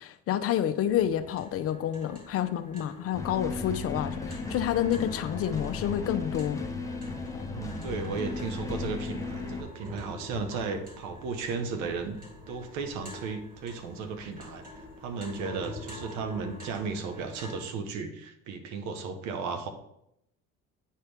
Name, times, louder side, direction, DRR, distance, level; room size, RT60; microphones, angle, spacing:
voice 1, 0.0-6.6, left 10 dB, 50° left, 10 dB, 0.6 m, -29 dB
sound 1, 0.9-17.6, left 1 dB, 30° right, 2.7 m, -46 dB
sound 2, 3.1-9.6, left 3 dB, 10° left, 0.9 m, -36 dB
voice 2, 7.4-12.2 12.5-14.6 15.0-19.7, right 4 dB, 75° right, 7 dB, 1.0 m, -35 dB
9.2 x 4.4 x 3.4 m, 0.79 s
supercardioid pair, 85°, 29 cm